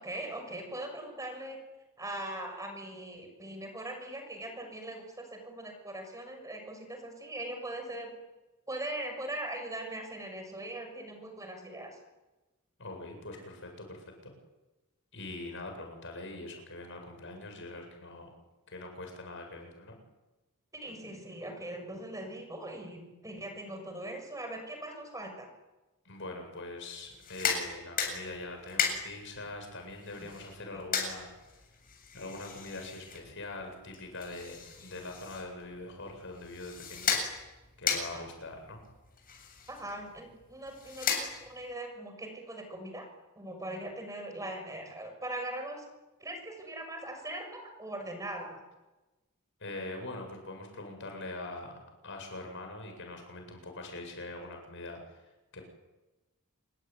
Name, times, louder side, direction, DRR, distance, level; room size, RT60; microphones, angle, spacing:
voice 1, 0.0-1.6 2.0-8.1 8.7-12.0 20.7-25.5 30.7-30.8 38.1-38.2 39.7-43.1 43.4-45.8 46.2-48.6, right 1 dB, 15° right, 5 dB, 6.4 m, -40 dB
voice 2, 12.8-14.3 15.1-18.3 18.7-19.9 26.0-31.3 32.1-37.2 37.8-38.8 49.6-51.7 52.0-55.2 55.5-55.6, left 2 dB, 60° left, 4 dB, 7.9 m, -43 dB
sound 1, 27.1-41.7, left 6 dB, 40° left, 7.8 m, -37 dB
28.0 x 22.0 x 9.5 m, 1.1 s
head